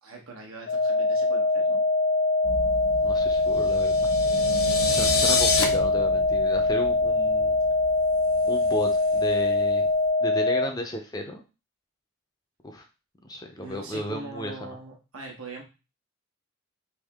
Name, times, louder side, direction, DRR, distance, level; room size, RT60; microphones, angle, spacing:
voice 1, 0.0-1.8 13.6-15.6, right 2 dB, 85° right, 0 dB, 1.2 m, -41 dB
sound 1, 0.7-10.7, left 2 dB, 60° left, 0.6 m, -23 dB
sound 2, 2.4-9.9, right 2 dB, 65° right, 0.9 m, -37 dB
voice 2, 3.0-4.1 4.9-7.6 8.5-9.9 10.2-11.4 12.6-12.8 13.2-14.8, left 1 dB, 20° left, 4 dB, 0.5 m, -34 dB
sound 3, 3.7-5.6, left 4 dB, 90° left, 0.8 m, -26 dB
3.5 x 2.9 x 3.5 m, 0.30 s
head